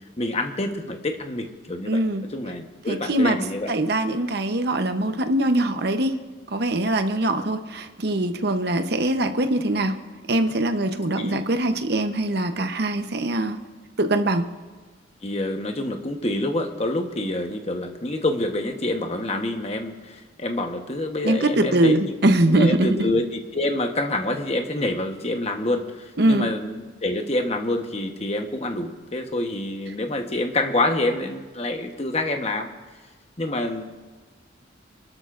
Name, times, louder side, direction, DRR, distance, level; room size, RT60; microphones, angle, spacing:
voice 1, 0.2-3.7 11.2-11.4 15.2-22.1 22.5-32.7 33.4-33.8, left 1 dB, 30° left, 4 dB, 1.1 m, -27 dB
voice 2, 1.9-2.2 2.9-3.4 3.7-6.1 6.5-10.0 10.3-13.6 14.0-14.5 21.2-23.0 26.2-26.5, right 1 dB, 55° right, 8 dB, 0.8 m, -22 dB
29.0 x 12.5 x 2.5 m, 1.4 s
head